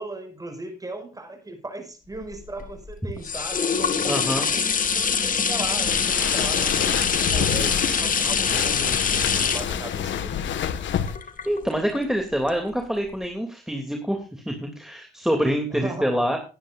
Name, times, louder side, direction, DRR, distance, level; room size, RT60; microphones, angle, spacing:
voice 1, 0.0-4.3 4.9-10.4 15.7-16.3, right 2 dB, 20° right, 6 dB, 5.7 m, -37 dB
sound 1, 2.2-12.0 12.5-12.6, left 6 dB, 40° left, 2.2 m, -25 dB
voice 2, 4.1-4.5 11.4-16.4, equal, ahead, 3 dB, 2.9 m, -26 dB
sound 2, 5.9-11.2, left 9 dB, 70° left, 1.7 m, -28 dB
20.0 x 10.0 x 2.6 m, 0.33 s
cardioid pair, 90°, 20 cm